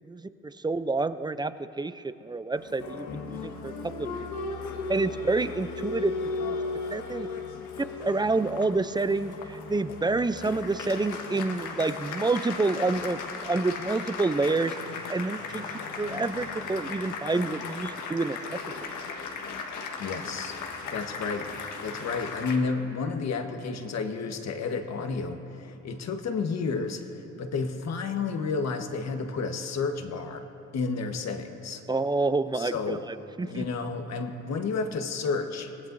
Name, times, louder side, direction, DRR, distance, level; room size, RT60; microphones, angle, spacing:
voice 1, 0.1-4.2 4.9-6.1 6.4-6.6 6.9-7.3 8.0-15.6 16.0-18.4 31.9-33.7, right 3 dB, 15° right, 12 dB, 0.5 m, -28 dB
Applause, 2.6-22.6, left 4 dB, 85° left, 1.6 m, -36 dB
voice 2, 20.0-20.6 20.9-21.5 21.8-27.0 27.4-30.5 30.7-31.8 32.5-33.0 33.4-35.9, left 4 dB, 60° left, 5 dB, 1.4 m, -31 dB
23.5 x 18.0 x 2.7 m, 2.9 s
cardioid pair, 90°, 30 cm